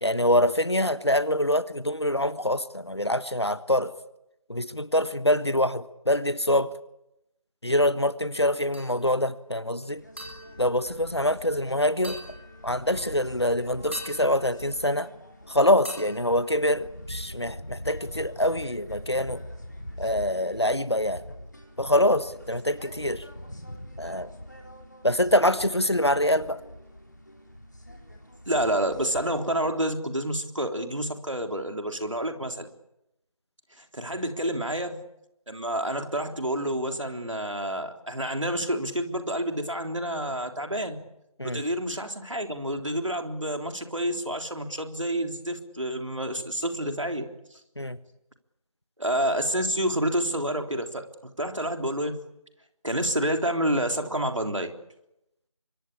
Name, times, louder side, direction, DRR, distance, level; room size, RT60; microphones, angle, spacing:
voice 1, 0.0-3.9 4.5-6.7 7.6-10.0 10.6-12.2 12.6-15.1 15.5-19.4 20.0-21.2 21.8-23.3 24.0-24.3 25.0-26.6 41.4-41.6 47.8-48.0, left 1 dB, 50° left, 15 dB, 1.3 m, -25 dB
sound 1, 8.7-9.3 10.2-11.6 12.0-13.1 13.9-15.4 15.8-17.3, equal, 20° right, 4.6 m, -45 dB
sound 2, 9.9-29.7, equal, 30° left, 3.6 m, -43 dB
voice 2, 28.5-32.7 33.8-35.0 35.5-41.0 41.4-47.6 49.0-51.1 51.4-52.2 52.8-54.7, right 1 dB, 60° right, 5 dB, 3.7 m, -29 dB
25.5 x 24.0 x 8.6 m, 0.86 s
figure-of-eight pair, 180°, 18 cm